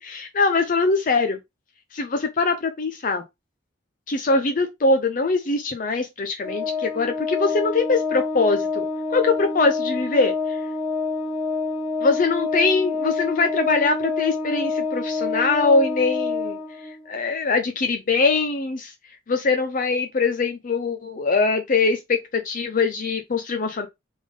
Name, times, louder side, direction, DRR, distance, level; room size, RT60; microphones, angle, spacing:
voice 1, 0.0-1.4 1.9-3.2 4.1-10.6 12.0-16.6 17.1-18.9 19.3-23.9, left 3 dB, 45° left, 0.5 m, -22 dB
Organ, 6.4-17.1, left 3 dB, 25° left, 1.1 m, -27 dB
3.6 x 3.5 x 3.6 m
head